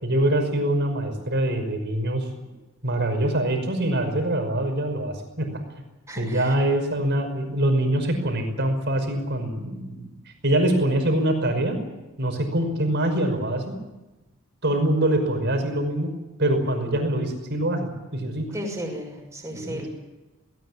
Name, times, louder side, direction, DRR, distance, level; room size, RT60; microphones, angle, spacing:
voice 1, 0.0-2.3 2.8-5.5 6.2-10.1 10.4-11.8 12.2-13.7 14.6-16.1 16.4-18.5 19.5-19.9, right 1 dB, 55° right, 5 dB, 5.7 m, -24 dB
voice 2, 6.1-6.5 18.5-19.9, equal, 15° right, -1 dB, 6.3 m, -34 dB
19.5 x 19.0 x 9.9 m, 1.1 s
head